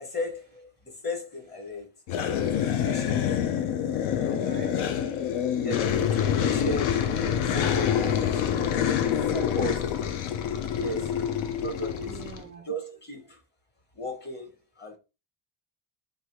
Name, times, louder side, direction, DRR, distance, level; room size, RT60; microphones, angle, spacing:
voice 1, 0.0-1.9 2.3-3.2 4.1-4.6 5.6-7.0 7.4-8.6 8.9-9.9 10.7-11.2 11.6-12.2 12.6-13.4 13.9-15.0, equal, 20° left, 0.9 m, -36 dB
sound 1, 2.1-12.4, left 9 dB, 85° left, 0.8 m, -26 dB
voice 2, 2.7-3.1 4.0-5.6 11.6-12.7, right 4 dB, 25° right, 0.3 m, -48 dB
3.4 x 2.7 x 4.4 m
cardioid pair, 175°, 47 cm